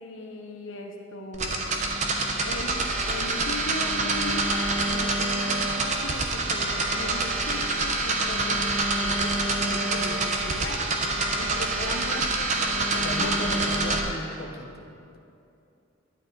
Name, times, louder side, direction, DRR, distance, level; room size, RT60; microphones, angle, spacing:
voice 1, 0.0-1.6 2.4-13.6, left 1 dB, 75° left, 1 dB, 0.9 m, -38 dB
sound 1, 1.3-14.0, right 2 dB, 35° right, 1.0 m, -26 dB
voice 2, 13.0-15.2, left 1 dB, 50° left, 0 dB, 1.0 m, -36 dB
11.5 x 10.0 x 4.2 m, 2.6 s
head